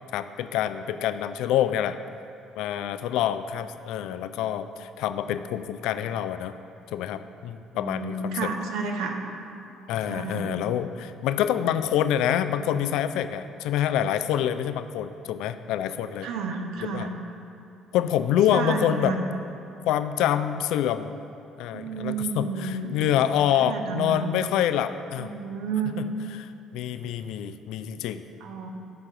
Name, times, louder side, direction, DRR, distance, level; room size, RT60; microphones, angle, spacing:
voice 1, 0.1-2.0 2.6-6.6 6.9-8.5 9.9-16.3 16.8-17.1 17.9-19.2 19.9-21.1 21.6-25.3 26.0-26.1 26.4-28.2, left 10 dB, 60° left, 11 dB, 0.3 m, -26 dB
voice 2, 7.7-9.2 10.1-10.5 16.2-17.1 18.5-19.3 21.7-22.9 23.6-24.4 25.2-26.0 28.4-28.7, right 5 dB, 60° right, 2 dB, 0.8 m, -31 dB
7.2 x 5.9 x 6.7 m, 3.0 s
figure-of-eight pair, 50°, 0 cm